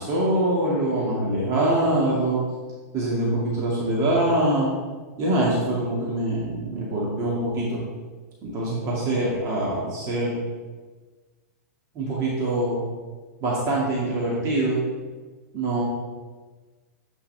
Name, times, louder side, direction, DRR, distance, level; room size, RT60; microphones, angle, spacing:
voice 1, 0.0-2.4 2.9-4.7 5.2-7.8 8.4-10.4 11.9-12.8 13.4-14.8 15.5-15.8, right 1 dB, 35° right, -5 dB, 2.1 m, -24 dB
9.2 x 5.5 x 3.4 m, 1.3 s
hypercardioid pair, 125°, 9 cm